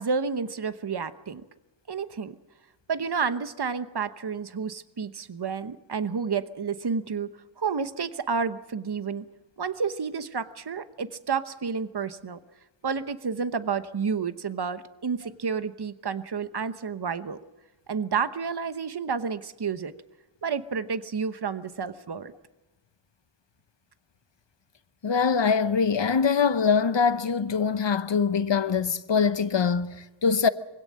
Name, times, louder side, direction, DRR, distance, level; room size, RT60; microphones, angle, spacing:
voice 1, 0.0-1.4 1.9-2.4 2.9-9.2 9.6-12.4 12.8-17.4 17.9-19.9 20.4-22.3, right 5 dB, 55° right, 1.0 m, -30 dB
voice 2, 25.0-30.5, left 6 dB, 65° left, 0.9 m, -23 dB
23.5 x 17.0 x 7.5 m
wide cardioid pair, 65°, 47 cm